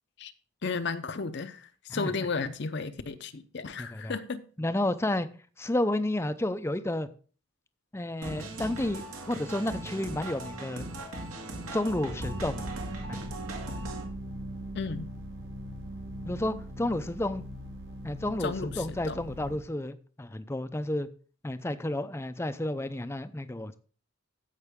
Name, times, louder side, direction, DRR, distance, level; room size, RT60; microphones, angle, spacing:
voice 1, 0.6-4.4 14.7-15.1 18.4-19.2, left 4 dB, 55° left, 0.6 m, -34 dB
voice 2, 3.8-4.2 4.6-5.3 5.6-7.1 7.9-10.9 11.7-12.7 13.1-13.2 16.2-17.4 18.0-21.1 21.4-23.8, left 1 dB, 10° left, 0.4 m, -31 dB
sound 1, 8.2-14.0, right 2 dB, 85° right, 2.2 m, -39 dB
sound 2, 12.2-19.6, equal, 60° right, 1.3 m, -40 dB
15.0 x 5.7 x 3.6 m
head